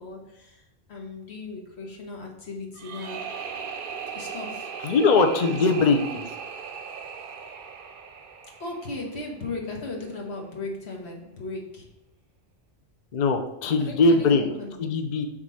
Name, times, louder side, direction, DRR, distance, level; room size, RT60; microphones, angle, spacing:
voice 1, 0.0-3.4 4.1-4.9 5.4-5.6 8.6-12.0 13.8-14.9, left 3 dB, 80° left, 1 dB, 1.4 m, -37 dB
sound 1, 2.7-9.7, right 6 dB, 55° right, 0.7 m, -38 dB
voice 2, 4.8-6.3 13.1-14.4 14.8-15.3, left 3 dB, 50° left, 4 dB, 0.6 m, -21 dB
4.8 x 3.6 x 5.5 m, 0.86 s
omnidirectional pair, 1.1 m